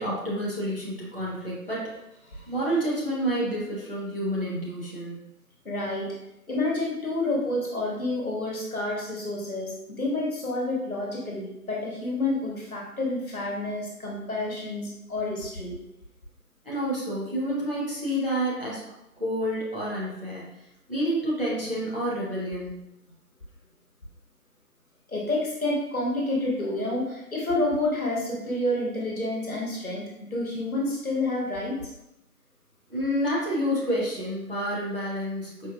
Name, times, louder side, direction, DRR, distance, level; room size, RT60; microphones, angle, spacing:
voice 1, 0.0-1.8 2.5-5.2 16.6-18.9 19.2-20.5 20.9-22.8 32.9-35.7, equal, 35° right, -7 dB, 0.8 m, -29 dB
voice 2, 5.6-6.1 6.5-15.8 25.1-31.8, left 2 dB, 60° left, -3 dB, 1.1 m, -29 dB
4.4 x 2.5 x 2.3 m, 0.86 s
figure-of-eight pair, 175°, 47 cm